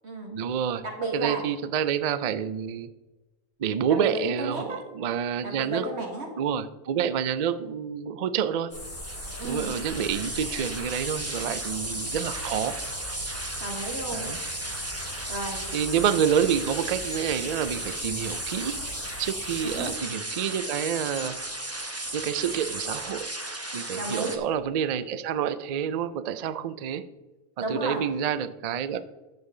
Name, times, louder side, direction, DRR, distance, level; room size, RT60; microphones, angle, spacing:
voice 1, 0.3-0.8 1.1-2.9 3.6-5.9 6.4-8.7 9.4-12.8 14.1-14.4 15.7-18.8 19.2-21.4 22.1-23.3 23.7-27.0 27.7-29.0, right 8 dB, 85° right, 13 dB, 0.3 m, -28 dB
voice 2, 0.8-1.4 4.0-4.8 5.4-6.3 9.4-9.7 11.8-12.2 13.6-14.2 15.3-15.6 19.6-19.9 24.0-24.4 27.6-28.0, right 2 dB, 60° right, 0 dB, 2.1 m, -33 dB
sound 1, 8.7-20.0, left 1 dB, 75° left, 3.0 m, -39 dB
sound 2, 8.7-24.4, right 2 dB, 15° right, 0.8 m, -35 dB
11.0 x 7.2 x 3.8 m, 1.1 s
omnidirectional pair, 1.3 m